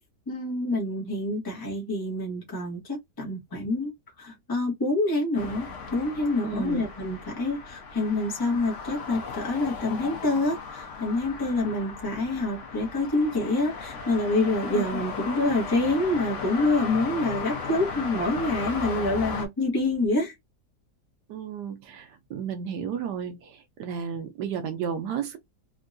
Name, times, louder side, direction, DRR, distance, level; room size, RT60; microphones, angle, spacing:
voice 1, 0.3-20.3, left 2 dB, 15° left, 0.8 m, -27 dB
sound 1, 5.3-19.5, left 5 dB, 55° left, 1.0 m, -36 dB
voice 2, 6.4-6.8 14.7-14.8 21.3-25.4, right 7 dB, 80° right, 1.2 m, -33 dB
3.5 x 2.2 x 2.5 m
omnidirectional pair, 1.8 m